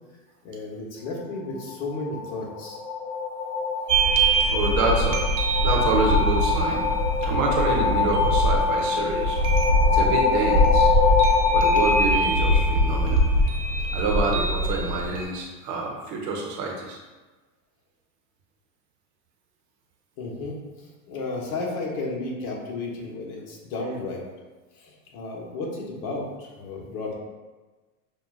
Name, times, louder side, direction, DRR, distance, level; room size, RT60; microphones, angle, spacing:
voice 1, 0.4-2.8 20.2-20.6 21.1-24.2 24.8-27.1, left 3 dB, 65° left, -2 dB, 1.3 m, -33 dB
sound 1, 1.6-13.2, left 5 dB, 30° left, 1.1 m, -25 dB
sound 2, 3.9-15.2, right 1 dB, 80° right, 1.0 m, -23 dB
voice 2, 4.5-5.2 5.6-6.9 7.2-9.4 9.9-10.9 11.5-13.2 13.9-17.0 23.8-23.9, right 3 dB, 40° right, 0 dB, 0.8 m, -27 dB
6.8 x 2.4 x 2.4 m, 1.2 s
supercardioid pair, 125°, 44 cm